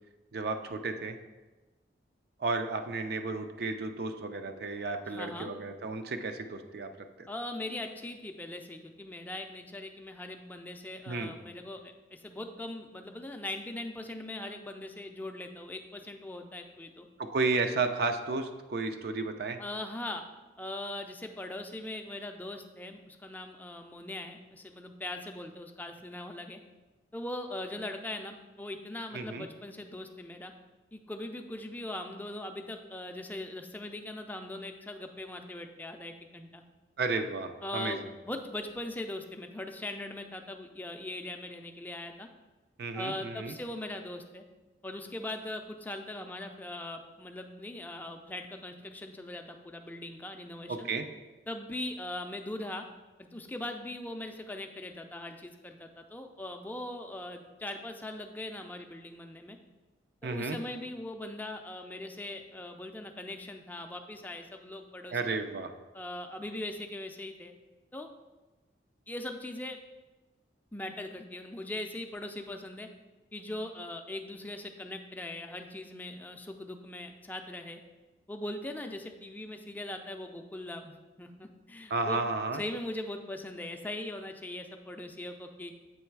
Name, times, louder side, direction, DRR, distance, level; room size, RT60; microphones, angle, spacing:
voice 1, 0.3-1.2 2.4-6.9 7.2-7.3 11.1-11.3 17.2-19.6 29.1-29.5 37.0-38.0 42.8-43.5 50.7-51.1 60.2-60.6 65.1-65.7 81.9-82.6, right 3 dB, 60° right, 7 dB, 0.5 m, -32 dB
voice 2, 5.1-5.5 7.3-17.1 19.6-20.2 20.6-26.6 27.1-30.5 30.9-36.6 37.6-42.3 42.9-44.4 44.8-50.9 51.5-52.8 53.2-59.6 60.2-65.2 65.9-67.5 67.9-68.1 69.1-69.8 70.7-72.9 73.3-77.8 78.3-82.2 82.5-85.7, left 1 dB, 10° left, 5 dB, 0.4 m, -40 dB
7.6 x 3.2 x 4.6 m, 1.2 s
head